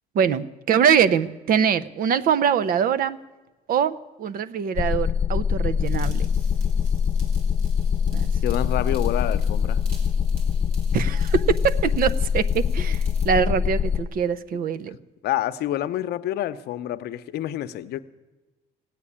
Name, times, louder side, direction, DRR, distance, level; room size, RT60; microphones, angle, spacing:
voice 1, 0.1-3.2 3.7-6.3 8.1-8.3 10.9-15.0, right 7 dB, 60° right, 15 dB, 0.8 m, -23 dB
sound 1, 4.8-14.0, left 7 dB, 35° left, 0.6 m, -23 dB
sound 2, 5.8-13.3, right 3 dB, 75° right, 3.5 m, -50 dB
voice 2, 8.4-9.8 14.9-15.0 15.2-18.0, left 13 dB, 70° left, 12 dB, 0.8 m, -28 dB
17.0 x 8.4 x 9.9 m, 1.2 s
cardioid pair, 110°, 17 cm